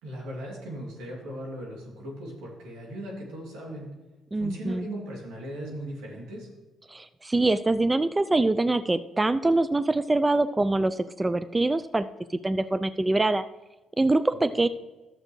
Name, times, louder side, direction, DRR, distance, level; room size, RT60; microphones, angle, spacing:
voice 1, 0.0-3.9 4.3-6.5 14.5-14.6, right 1 dB, 85° right, -2 dB, 2.7 m, -38 dB
voice 2, 4.3-4.9 6.9-13.4 14.0-14.7, right 2 dB, 20° right, 13 dB, 0.4 m, -24 dB
12.0 x 7.4 x 3.2 m, 1.2 s
supercardioid pair, 65°, 0 cm